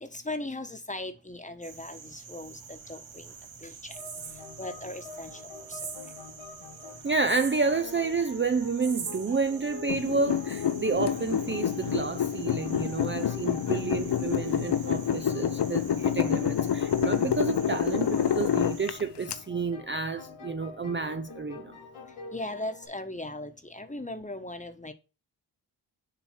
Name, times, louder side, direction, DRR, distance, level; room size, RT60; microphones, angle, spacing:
voice 1, 0.0-3.2 3.6-3.9 4.6-5.4 5.7-5.8 22.3-24.9, left 2 dB, 15° left, 1.2 m, -38 dB
sound 1, 1.6-19.0, right 6 dB, 65° right, 1.6 m, -45 dB
sound 2, 3.9-22.9, left 4 dB, 80° left, 2.6 m, -46 dB
voice 2, 7.0-21.8, right 4 dB, 25° right, 0.6 m, -30 dB
sound 3, 9.9-19.3, left 9 dB, 55° left, 0.8 m, -28 dB
7.4 x 3.1 x 6.1 m
cardioid pair, 50°, 49 cm